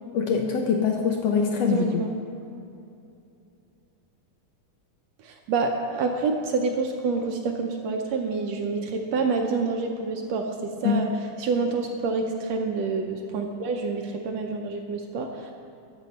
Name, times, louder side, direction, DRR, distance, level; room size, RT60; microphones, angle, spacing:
voice 1, 0.1-2.0 10.8-11.0, left 6 dB, 70° left, 2 dB, 1.6 m, -23 dB
voice 2, 1.7-2.1 5.2-11.1 11.4-15.5, right 4 dB, 75° right, 3 dB, 1.7 m, -27 dB
12.5 x 7.9 x 5.3 m, 2.6 s
omnidirectional pair, 3.5 m